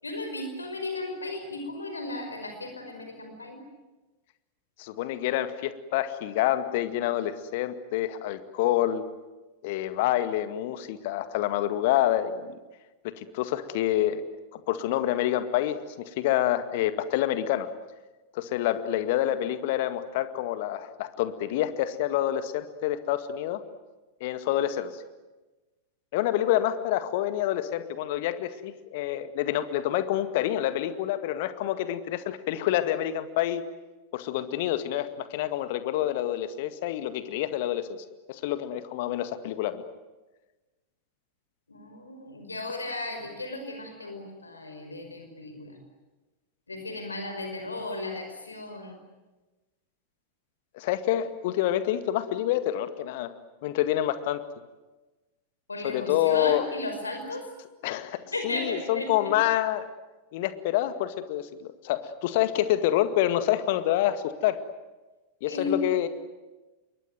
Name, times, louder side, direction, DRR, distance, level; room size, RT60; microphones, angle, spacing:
voice 1, 0.0-3.6 41.7-45.7 46.7-49.0 55.7-57.4 58.3-59.3 65.4-65.7, left 2 dB, 80° left, 5 dB, 5.3 m, -35 dB
voice 2, 4.8-9.0 9.6-12.5 13.0-14.2 14.5-17.7 18.3-23.6 24.2-25.0 26.1-33.6 34.1-39.8 50.7-53.3 53.6-54.4 55.8-56.6 57.8-58.2 58.4-59.9 60.3-64.6 65.4-66.1, left 13 dB, 50° left, 11 dB, 2.0 m, -27 dB
27.5 x 23.0 x 9.3 m, 1.1 s
figure-of-eight pair, 90°, 0 cm